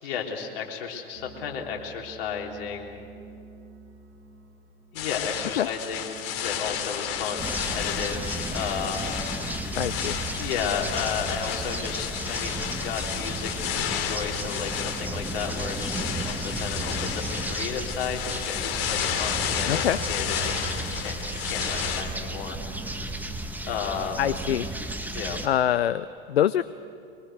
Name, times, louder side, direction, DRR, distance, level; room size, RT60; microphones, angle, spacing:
voice 1, 0.0-3.0 4.9-9.2 10.4-20.5 20.9-21.2 21.4-22.6 23.7-24.2 25.1-25.4, left 7 dB, 65° left, 1 dB, 3.7 m, -33 dB
sound 1, 1.1-12.9, right 5 dB, 70° right, 4.4 m, -48 dB
sound 2, 5.0-22.0, left 9 dB, 50° left, 2.7 m, -32 dB
sound 3, 7.4-25.5, right 1 dB, 5° right, 1.8 m, -34 dB
voice 2, 9.8-10.2 19.7-20.0 24.2-24.7 25.4-26.6, left 11 dB, 85° left, 15 dB, 0.6 m, -24 dB
24.0 x 22.0 x 8.0 m, 2.5 s
hypercardioid pair, 90°, 30 cm